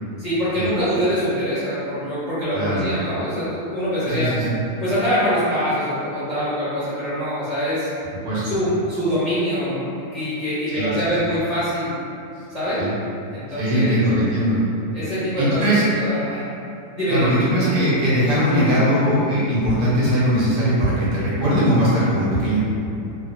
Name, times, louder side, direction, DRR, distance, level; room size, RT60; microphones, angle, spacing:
voice 1, 0.2-4.3 4.8-7.9 8.4-9.8 10.1-11.9 12.5-12.8 13.3-14.0 14.9-16.5 16.9-17.3 17.6-17.7, equal, 40° left, -14 dB, 0.6 m, -24 dB
voice 2, 2.5-2.9 4.1-4.6 8.2-8.5 10.7-11.1 12.8-12.9 13.6-14.6 15.4-15.8 17.1-22.6, equal, 85° right, -9 dB, 1.4 m, -20 dB
3.2 x 2.1 x 2.5 m, 2.7 s
omnidirectional pair, 1.6 m